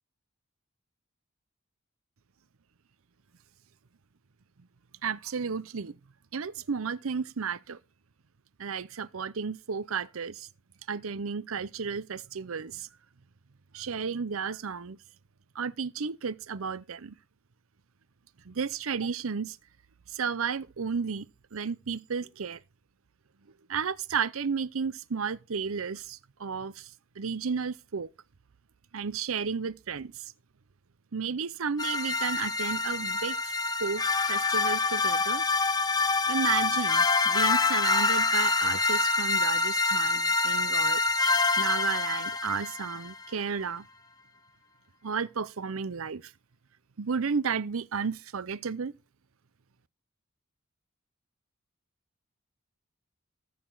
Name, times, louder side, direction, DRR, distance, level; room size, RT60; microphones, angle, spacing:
voice 1, 5.0-6.0 6.3-7.8 8.6-10.5 10.9-12.9 13.7-15.0 15.5-17.2 18.4-19.6 20.1-22.6 23.7-26.9 27.2-28.1 28.9-30.3 31.1-33.5 33.8-34.0 34.3-35.4 36.3-41.0 41.6-43.9 45.0-46.3 47.0-48.9, right 6 dB, 70° right, 0.7 m, -33 dB
sound 1, 31.8-43.1, left 3 dB, 20° left, 1.0 m, -26 dB
14.5 x 6.7 x 3.9 m
head